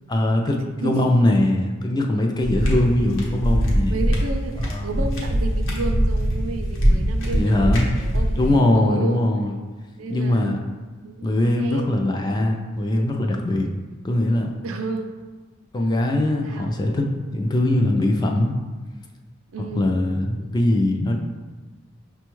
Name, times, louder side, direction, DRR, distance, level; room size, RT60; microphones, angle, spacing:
voice 1, 0.1-3.9 4.7-5.0 7.3-7.9 8.4-9.5 10.1-10.6 11.2-13.7 14.0-14.6 15.7-18.5 19.7-21.3, left 1 dB, 20° left, 2 dB, 0.3 m, -21 dB
sound 1, 2.4-8.6, equal, 70° left, 0.9 m, -22 dB
voice 2, 2.5-2.9 3.9-9.2 10.0-10.6 11.0-12.0 14.6-15.2 16.4-16.7 19.5-19.9, right 3 dB, 80° right, 5 dB, 0.4 m, -32 dB
5.9 x 2.3 x 3.0 m, 1.3 s
head